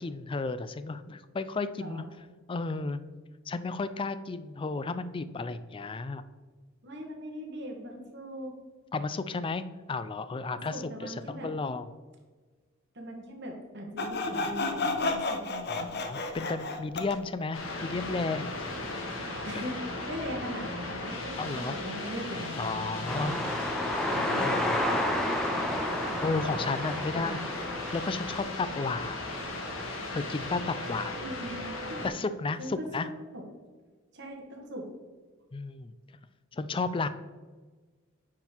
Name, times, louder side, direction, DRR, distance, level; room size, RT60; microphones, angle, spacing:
voice 1, 0.0-2.0 2.5-3.0 3.5-6.2 8.9-11.9 15.7-19.0 21.4-21.8 22.6-23.4 24.4-25.0 26.2-27.4 27.9-29.4 30.1-31.2 32.0-33.1 35.5-35.9 36.5-37.1, left 3 dB, 25° left, 13 dB, 0.4 m, -33 dB
voice 2, 1.7-2.1 6.8-8.5 10.5-11.5 12.9-15.9 19.4-23.5 24.0-24.8 26.5-27.5 31.1-32.1 32.6-33.4 34.1-34.9, equal, 60° right, 1 dB, 1.6 m, -40 dB
Sawing, 14.0-17.2, left 3 dB, 55° left, 0.7 m, -31 dB
sound 1, 17.5-32.1, left 2 dB, 85° left, 1.5 m, -37 dB
sound 2, 23.1-28.4, left 1 dB, ahead, 0.7 m, -31 dB
9.2 x 3.9 x 4.5 m, 1.4 s
head